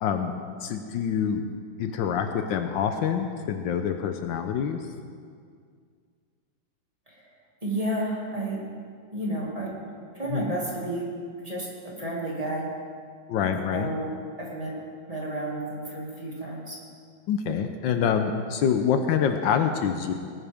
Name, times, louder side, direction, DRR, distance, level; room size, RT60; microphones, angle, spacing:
voice 1, 0.0-1.4 1.8-4.8 10.3-10.6 13.3-13.9 17.3-20.1, left 7 dB, 75° left, 6 dB, 1.4 m, -26 dB
voice 2, 7.6-8.6 9.1-9.7 10.1-11.1 11.4-11.7 12.0-12.6 13.4-14.1 14.4-14.7 15.1-16.8, right 1 dB, 20° right, -4 dB, 2.1 m, -31 dB
19.0 x 9.8 x 3.5 m, 2.1 s
omnidirectional pair, 2.2 m